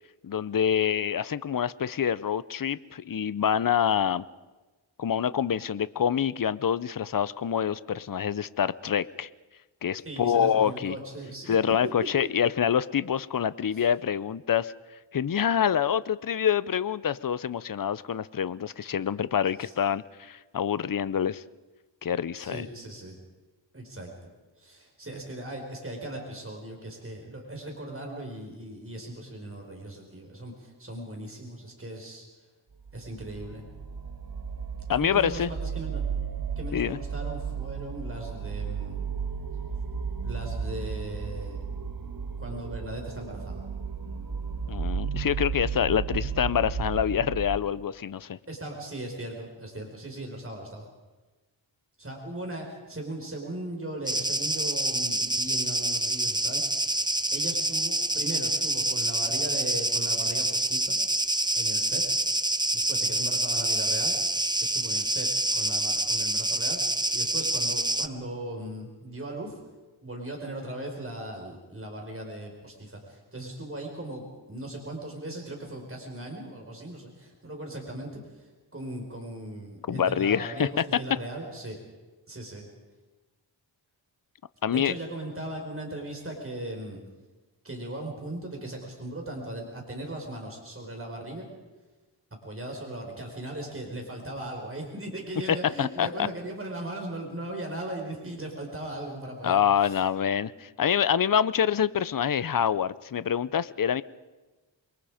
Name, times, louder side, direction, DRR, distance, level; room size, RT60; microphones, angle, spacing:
voice 1, 0.2-4.2 5.0-9.3 9.8-11.0 11.5-14.7 15.1-21.4 22.0-22.7 34.9-35.5 36.7-37.0 44.7-48.4 79.9-80.8 84.6-84.9 95.8-96.1 99.4-104.0, left 8 dB, 45° left, 17 dB, 0.7 m, -26 dB
voice 2, 10.0-11.5 19.6-19.7 22.3-23.2 23.7-24.1 24.6-32.3 32.9-33.6 34.9-36.0 36.5-39.0 40.2-41.6 42.4-43.6 48.5-50.9 52.0-56.6 57.3-61.0 61.5-62.0 62.7-64.2 64.6-69.6 70.0-74.2 74.5-81.8 82.3-82.7 84.7-87.0 87.6-91.5 92.4-100.0, right 1 dB, 30° right, 1 dB, 5.2 m, -38 dB
sound 1, 32.8-47.6, right 6 dB, 50° right, 1.7 m, -34 dB
sound 2, 54.1-68.1, right 1 dB, 10° right, 0.8 m, -27 dB
28.0 x 22.5 x 5.1 m, 1.2 s
wide cardioid pair, 75°, 46 cm